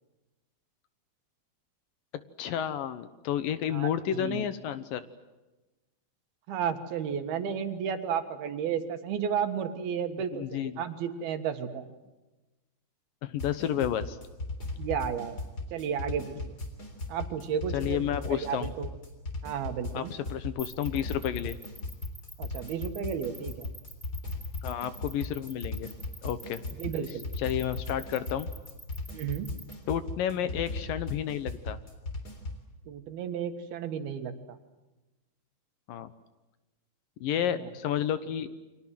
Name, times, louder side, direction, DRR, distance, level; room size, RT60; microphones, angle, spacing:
voice 1, 2.4-5.0 10.3-10.7 13.2-14.2 17.7-18.7 19.9-21.6 24.6-25.9 26.2-26.6 27.4-28.5 29.9-31.8 35.9-36.1 37.2-38.5, left 10 dB, 70° left, 13 dB, 2.6 m, -31 dB
voice 2, 3.7-4.5 6.5-11.8 14.8-15.4 15.7-16.6 17.1-18.9 19.4-20.1 22.4-23.7 26.8-27.3 29.1-29.5 32.9-34.6 37.4-37.7, right 8 dB, 80° right, 8 dB, 3.5 m, -33 dB
sound 1, 13.4-32.7, left 2 dB, 25° left, 3.7 m, -38 dB
sound 2, 20.6-29.7, equal, ahead, 2.9 m, -47 dB
30.0 x 24.0 x 7.7 m, 1.1 s
omnidirectional pair, 4.4 m